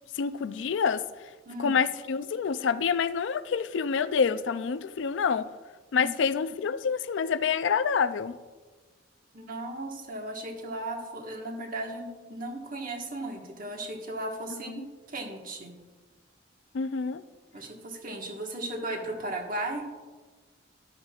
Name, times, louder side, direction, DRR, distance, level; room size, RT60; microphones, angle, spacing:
voice 1, 0.2-1.0 1.6-5.5 5.9-8.4 14.7-14.9 16.7-17.2, left 6 dB, 70° left, 13 dB, 0.4 m, -27 dB
voice 2, 1.4-1.8 5.9-6.1 9.3-15.8 17.5-19.9, right 1 dB, 45° right, 2 dB, 1.4 m, -36 dB
13.0 x 11.0 x 2.4 m, 1.3 s
head